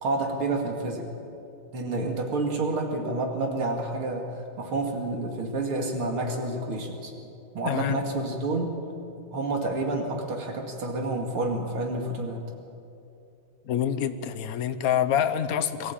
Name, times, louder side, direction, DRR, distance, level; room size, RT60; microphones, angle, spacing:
voice 1, 0.0-1.1 1.7-7.1 7.5-8.8 9.3-12.4, right 2 dB, 90° right, 2 dB, 3.2 m, -29 dB
voice 2, 7.6-8.0 13.6-15.9, left 9 dB, 55° left, 10 dB, 1.1 m, -26 dB
22.5 x 14.0 x 8.7 m, 2.8 s
omnidirectional pair, 2.3 m